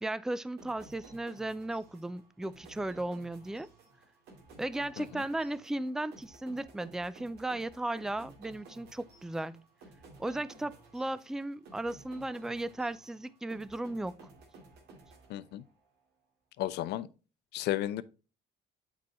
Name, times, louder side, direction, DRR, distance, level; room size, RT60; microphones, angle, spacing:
voice 1, 0.0-3.7 4.6-9.6 10.2-14.2, right 1 dB, 5° right, 0.4 m, -36 dB
sound 1, 0.6-15.9, right 3 dB, 75° right, 2.3 m, -55 dB
voice 2, 15.3-15.6 16.6-17.1 17.5-18.0, left 13 dB, 80° left, 0.6 m, -33 dB
8.4 x 4.8 x 3.0 m
cardioid pair, 110°, 17 cm